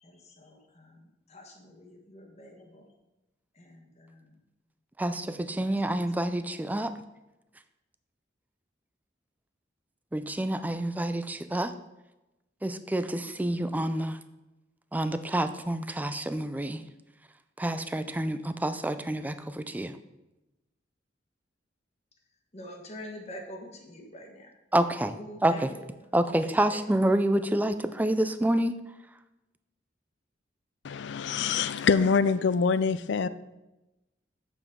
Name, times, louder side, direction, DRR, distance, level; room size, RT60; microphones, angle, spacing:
voice 1, 0.0-2.9 3.6-4.3 5.6-5.7 22.5-24.5 25.0-25.9 26.7-26.8, equal, 40° left, 2 dB, 1.3 m, -46 dB
voice 2, 5.0-6.9 10.1-11.7 12.6-14.2 14.9-16.8 17.6-20.0 24.7-25.2 25.4-25.7 26.1-28.7, right 1 dB, 10° right, 11 dB, 0.4 m, -28 dB
voice 3, 30.8-33.3, left 5 dB, 70° left, 15 dB, 0.4 m, -25 dB
7.9 x 6.9 x 3.7 m, 0.99 s
head